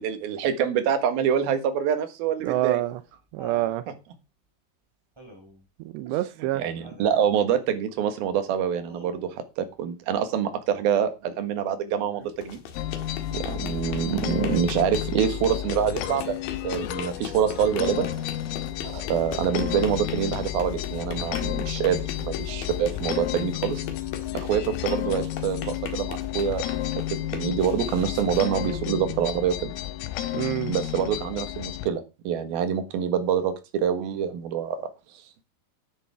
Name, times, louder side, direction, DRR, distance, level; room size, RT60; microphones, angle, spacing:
voice 1, 0.0-2.8 6.1-6.2 6.5-12.6 13.3-16.4 16.6-18.1 18.8-23.9 24.3-26.7 27.3-29.7 30.7-34.8, right 8 dB, 60° right, 2.9 m, -26 dB
Laughter, 2.4-3.8 5.2-5.6 6.8-7.3 8.9-9.4 11.9-12.4 13.3-13.7 16.1-16.6 17.9-18.6 20.0-20.1, right 1 dB, 5° right, 2.9 m, -48 dB
voice 2, 2.4-3.0 3.3-3.8 5.9-6.6 30.3-30.7, right 15 dB, 85° right, 2.4 m, -26 dB
sound 1, 12.3-29.3, left 7 dB, 60° left, 2.6 m, -40 dB
sound 2, 12.8-31.9, left 12 dB, 85° left, 3.6 m, -32 dB
13.0 x 10.0 x 3.6 m
omnidirectional pair, 5.8 m